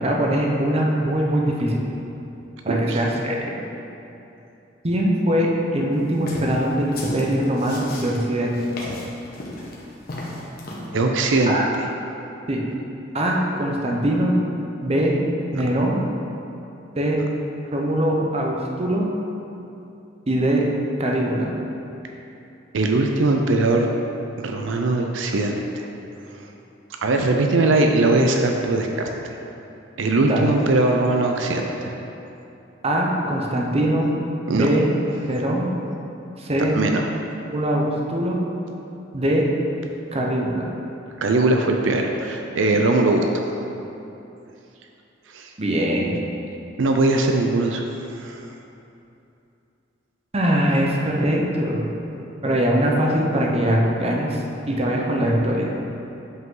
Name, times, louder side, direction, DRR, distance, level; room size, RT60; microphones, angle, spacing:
voice 1, 0.0-1.8 2.6-3.6 4.8-8.6 11.5-11.7 12.5-12.6 13.1-14.3 14.8-15.2 15.5-16.0 17.0-17.2 17.7-19.1 20.3-20.6 21.0-21.5 30.2-30.5 32.8-34.1 34.5-34.9 35.3-35.7 36.4-36.8 37.5-38.4 39.1-39.5 40.1-40.7 45.6-46.2 50.3-51.9 52.4-55.7, right 1 dB, 35° right, -1 dB, 0.8 m, -22 dB
voice 2, 2.7-3.0 10.9-11.9 15.5-15.6 22.7-23.9 24.4-25.9 26.3-26.5 27.0-29.1 30.0-31.9 34.5-34.7 36.7-37.1 41.2-43.4 45.3-45.5 46.8-47.8 48.1-48.4, right 2 dB, 80° right, 3 dB, 0.5 m, -20 dB
sound 1, 6.1-10.9, left 1 dB, 55° left, 1.1 m, -34 dB
7.8 x 5.4 x 3.8 m, 2.9 s
head